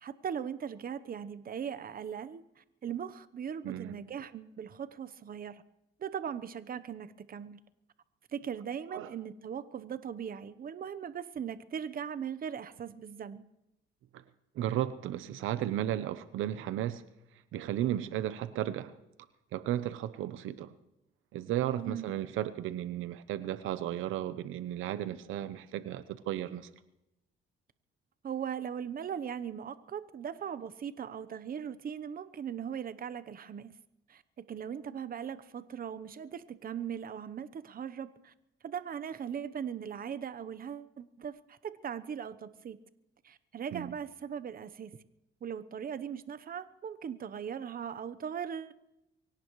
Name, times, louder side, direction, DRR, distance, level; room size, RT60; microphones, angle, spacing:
voice 1, 0.0-5.6 6.0-7.6 8.3-13.4 21.7-22.1 28.2-33.7 34.1-34.2 34.5-38.3 38.6-42.8 43.2-45.0 45.4-48.7, right 8 dB, 45° right, 0.9 m, -39 dB
voice 2, 3.6-3.9 8.9-9.1 14.1-14.2 14.5-17.0 17.5-19.0 19.5-20.7 21.3-26.7 43.7-43.9, right 12 dB, 85° right, 0.8 m, -34 dB
24.0 x 17.5 x 3.2 m
cardioid pair, 90°, 20 cm